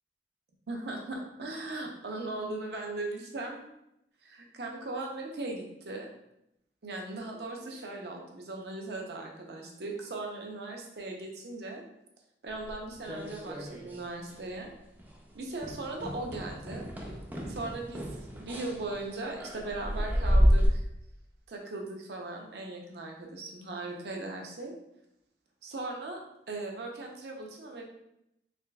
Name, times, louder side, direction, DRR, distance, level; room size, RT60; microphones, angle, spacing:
voice 1, 0.7-3.7 4.2-6.1 6.8-11.8 12.4-14.7 15.3-16.9 17.5-20.8 21.5-24.7 25.6-26.2 26.5-27.8, right 2 dB, 65° right, 1 dB, 0.6 m, -38 dB
sound 1, 12.6-14.1 14.3-14.7 15.0-15.2 15.6-20.7, equal, 10° right, 0.3 m, -30 dB
3.7 x 3.2 x 2.2 m, 0.82 s
head